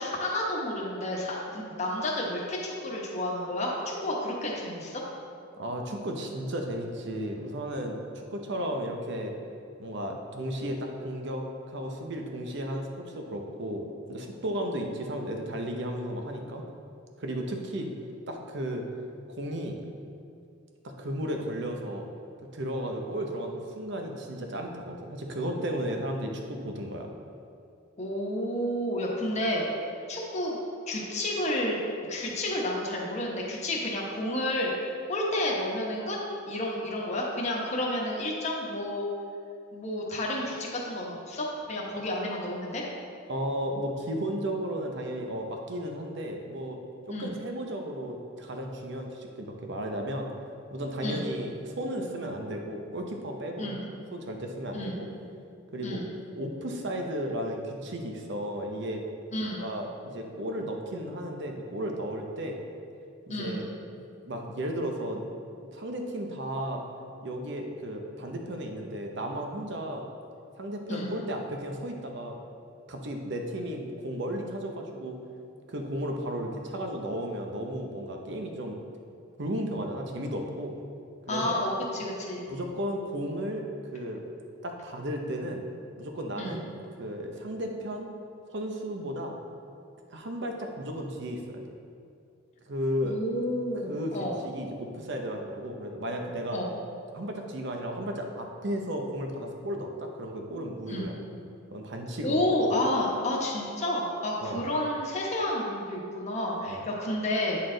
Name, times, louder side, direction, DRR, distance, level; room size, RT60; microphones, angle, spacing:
voice 1, 0.0-5.0 28.0-29.7 30.1-30.6 30.9-31.8 32.1-34.7 35.1-36.2 36.5-39.1 39.7-42.8 47.1-47.3 51.0-51.3 53.6-53.9 54.7-55.0 55.8-56.1 59.3-59.7 63.3-63.7 70.9-71.2 81.3-82.5 86.4-86.6 93.0-94.4 96.5-96.7 100.9-101.1 102.2-107.6, left 1 dB, 35° left, -3 dB, 1.1 m, -30 dB
voice 2, 5.6-9.3 9.8-16.6 17.2-17.9 18.3-18.8 19.3-19.8 20.8-22.1 22.5-27.1 41.9-42.0 43.3-46.8 47.1-50.3 50.7-53.8 54.1-55.1 55.7-56.0 56.3-59.0 59.6-62.6 63.3-63.6 64.2-65.2 65.6-66.8 67.2-70.0 70.6-72.4 72.9-75.2 75.7-78.8 79.4-80.8 81.2-81.6 82.5-83.7 83.9-84.2 84.6-85.6 86.0-86.6 87.0-88.1 88.5-89.4 90.1-91.6 92.7-93.2 93.8-94.2 94.4-96.6 97.1-101.1 101.7-102.4 104.4-104.7 106.7-106.8, equal, 60° right, 3 dB, 0.8 m, -34 dB
9.4 x 4.3 x 3.8 m, 2.4 s
head